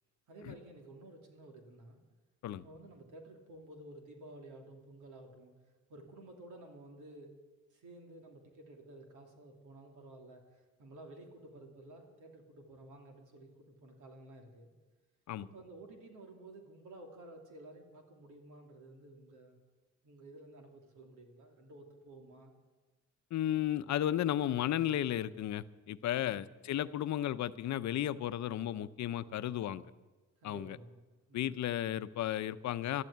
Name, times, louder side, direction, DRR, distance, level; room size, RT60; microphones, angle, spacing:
voice 1, 0.3-2.0 2.5-5.5 5.9-7.4 7.7-14.7 15.4-19.6 20.0-22.5 26.1-26.5 30.4-31.0 31.3-31.5, right 2 dB, 80° right, 3 dB, 2.9 m, -53 dB
voice 2, 23.3-29.8 30.4-30.8 31.3-33.0, left 12 dB, 65° left, 14 dB, 0.7 m, -34 dB
13.0 x 12.0 x 8.6 m, 1.2 s
cardioid pair, 90°, 30 cm